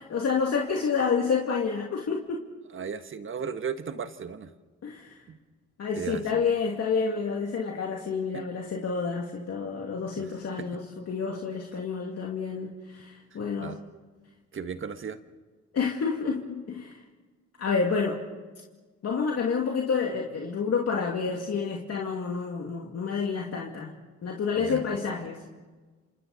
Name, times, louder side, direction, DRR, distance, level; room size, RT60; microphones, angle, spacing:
voice 1, 0.1-2.4 4.8-5.2 5.8-13.7 15.7-17.0 17.6-18.2 19.0-23.9 24.2-25.4, left 5 dB, 55° left, -1 dB, 2.4 m, -29 dB
voice 2, 2.7-4.5 5.3-5.4 5.9-6.2 8.3-8.4 10.2-10.7 13.6-13.8 14.5-15.2 24.6-24.8, right 6 dB, 40° right, 9 dB, 1.5 m, -36 dB
28.5 x 27.0 x 4.1 m, 1.3 s
cardioid pair, 90°, 30 cm